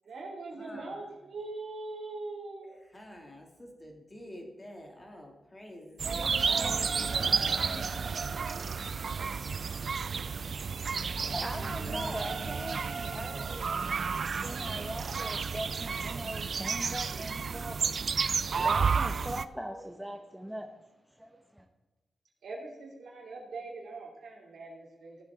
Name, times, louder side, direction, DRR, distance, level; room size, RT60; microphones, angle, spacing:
voice 1, 0.0-2.8 22.4-25.2, right 3 dB, 80° right, -1 dB, 2.7 m, -42 dB
voice 2, 0.6-1.0 2.9-8.5, left 1 dB, 25° left, 1 dB, 2.4 m, -48 dB
sound 1, 6.0-19.4, right 5 dB, 60° right, 0.4 m, -31 dB
sound 2, 6.1-19.3, equal, 65° left, 4.3 m, -50 dB
voice 3, 11.0-20.7 21.1-21.7, equal, 5° right, 4 dB, 0.9 m, -41 dB
sound 3, 11.1-16.2, right 2 dB, 45° right, 1.1 m, -55 dB
15.5 x 7.3 x 3.7 m, 1.1 s
cardioid pair, 60°, 0 cm